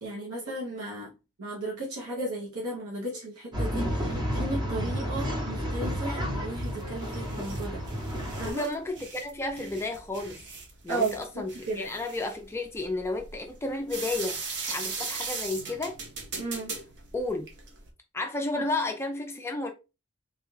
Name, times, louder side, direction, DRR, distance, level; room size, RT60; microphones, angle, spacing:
voice 1, 0.0-1.1 1.4-7.8 8.4-8.7 10.9-11.9 16.4-16.7, right 2 dB, 80° right, 0.9 m, -35 dB
Male speech man speaking / Chatter / Rattle, 3.5-8.5, equal, 20° right, 0.8 m, -31 dB
sound 1, 6.6-17.9, right 4 dB, 55° right, 0.8 m, -39 dB
voice 2, 8.4-10.4 10.8-16.0 17.1-17.4 18.1-19.7, left 2 dB, 10° left, 0.3 m, -32 dB
3.3 x 2.4 x 3.1 m
head